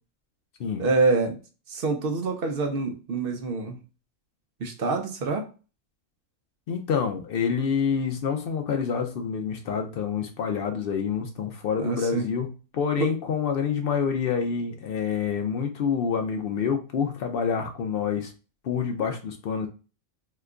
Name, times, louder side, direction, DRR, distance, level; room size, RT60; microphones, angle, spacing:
voice 1, 0.8-1.4 1.7-3.8 4.6-5.5 11.8-12.3 13.0-13.1, right 3 dB, 60° right, 4 dB, 0.6 m, -26 dB
voice 2, 6.7-18.3 18.6-19.7, left 6 dB, 70° left, 5 dB, 0.5 m, -27 dB
2.9 x 2.3 x 3.6 m, 0.34 s
omnidirectional pair, 1.5 m